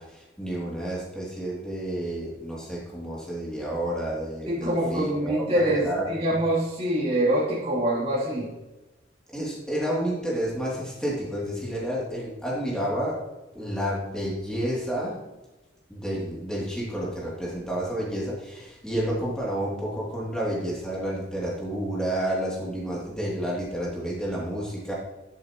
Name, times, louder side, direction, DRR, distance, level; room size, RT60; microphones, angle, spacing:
voice 1, 0.0-6.4 9.3-13.2 13.5-15.2 15.9-24.9, right 1 dB, 5° left, -5 dB, 2.7 m, -30 dB
voice 2, 4.5-8.5, right 1 dB, 30° right, -8 dB, 2.9 m, -25 dB
11.0 x 7.9 x 3.0 m, 1.1 s
head